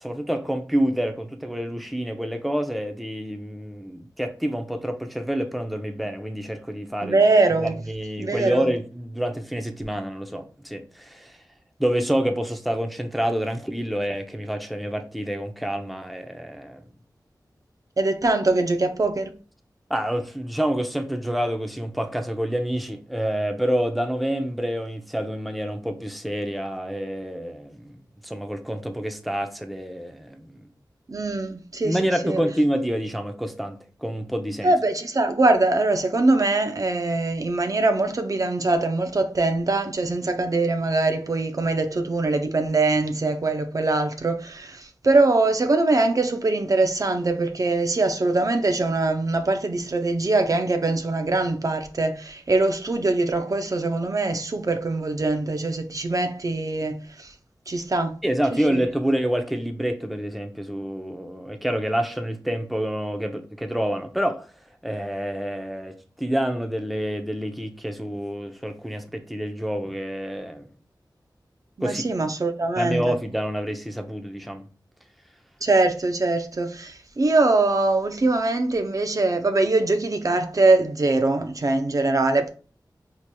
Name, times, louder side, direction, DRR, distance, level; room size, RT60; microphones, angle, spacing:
voice 1, 0.0-7.2 7.6-11.4 11.8-16.8 19.9-27.9 28.2-30.6 31.8-33.8 34.0-34.7 58.2-64.4 64.8-70.6 71.8-72.0 72.8-74.6, equal, ahead, 0.6 m, -27 dB
voice 2, 7.0-7.8 8.2-8.7 18.0-19.3 31.1-32.4 34.6-57.3 57.7-58.1 58.7-58.8 71.8-73.1 75.6-82.5, right 2 dB, 50° right, 0.5 m, -22 dB
4.5 x 2.8 x 2.2 m
wide cardioid pair, 55°, 8 cm